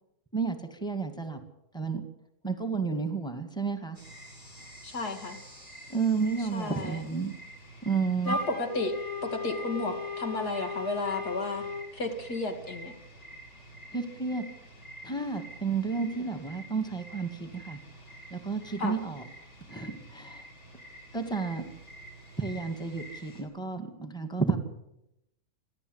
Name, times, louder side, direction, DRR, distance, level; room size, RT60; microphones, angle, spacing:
voice 1, 0.3-1.4 1.7-2.0 2.4-4.0 5.9-7.3 7.8-8.4 13.9-14.4 15.0-17.8 18.3-19.2 19.7-20.4 21.1-21.7 22.4-24.6, right 5 dB, 5° left, 5 dB, 1.9 m, -31 dB
sound 1, 3.9-23.4, right 1 dB, 45° left, 6.9 m, -49 dB
voice 2, 4.8-5.4 6.4-7.1 8.2-8.9 9.2-11.7 11.9-12.9 18.8-18.9, left 2 dB, 80° left, 4 dB, 3.1 m, -33 dB
Wind instrument woodwind instrument, 8.2-11.9, left 3 dB, 20° left, 2.0 m, -36 dB
30.0 x 11.5 x 8.1 m, 0.84 s
omnidirectional pair, 1.6 m